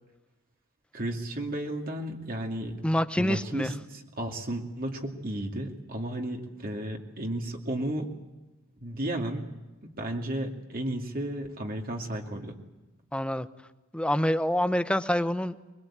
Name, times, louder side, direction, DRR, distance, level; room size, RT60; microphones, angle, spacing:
voice 1, 0.9-2.8 3.2-8.1 8.8-9.4 9.8-12.6, right 1 dB, 45° right, 2 dB, 2.5 m, -33 dB
voice 2, 2.8-3.7 13.1-13.5 13.9-15.5, equal, 5° left, 12 dB, 0.8 m, -26 dB
22.5 x 22.5 x 8.8 m, 1.1 s
head